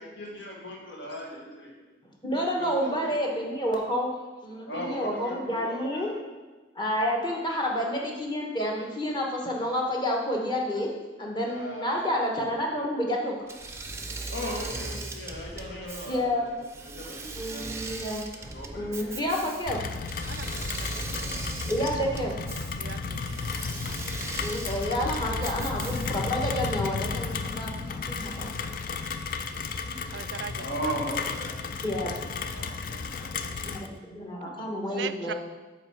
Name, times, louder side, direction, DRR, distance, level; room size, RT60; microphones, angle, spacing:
voice 1, 0.0-1.8 2.6-3.2 4.7-6.2 7.3-7.5 11.2-12.2 14.3-17.8 18.3-19.5 30.5-31.6 32.4-32.7, equal, 75° left, -1 dB, 1.6 m, -38 dB
voice 2, 2.2-6.1 6.7-13.3 16.1-16.5 17.3-18.2 18.7-19.8 20.6-20.9 21.6-22.4 24.4-28.5 29.8-30.3 31.8-32.2 33.2-35.3, equal, 25° left, -1 dB, 1.1 m, -30 dB
Engine / Mechanisms, 13.5-26.4, right 3 dB, 15° right, 0.5 m, -39 dB
Rain, 19.7-33.9, left 4 dB, 50° left, 0.4 m, -33 dB
voice 3, 20.3-21.0 22.8-23.5 30.1-30.5 32.6-33.1 33.4-33.5 35.0-35.3, right 8 dB, 75° right, 12 dB, 0.4 m, -40 dB
9.0 x 3.1 x 5.8 m, 1.3 s
head